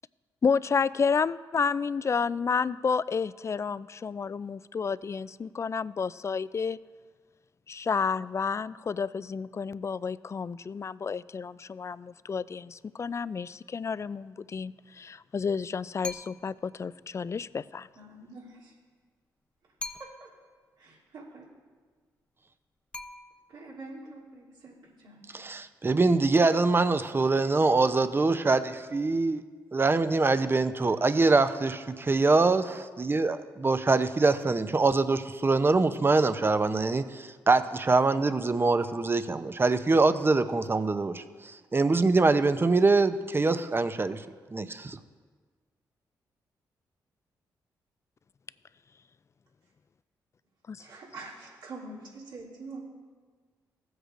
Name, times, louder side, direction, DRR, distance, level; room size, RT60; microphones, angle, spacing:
voice 1, 0.4-6.8 7.7-17.9 50.7-50.8, left 5 dB, 35° left, 18 dB, 0.3 m, -30 dB
sound 1, 16.0-16.7 19.8-20.5 22.9-23.7, left 3 dB, 15° left, 0.7 m, -42 dB
voice 2, 17.9-18.7 20.0-20.1 21.1-21.4 23.5-25.5 50.8-52.8, right 3 dB, 75° right, -6 dB, 2.9 m, -45 dB
voice 3, 25.3-29.4 29.7-41.2 41.7-44.2 44.5-45.0, right 3 dB, 30° right, 11 dB, 0.6 m, -24 dB
15.0 x 7.9 x 2.5 m, 1.5 s
supercardioid pair, 55°, 8 cm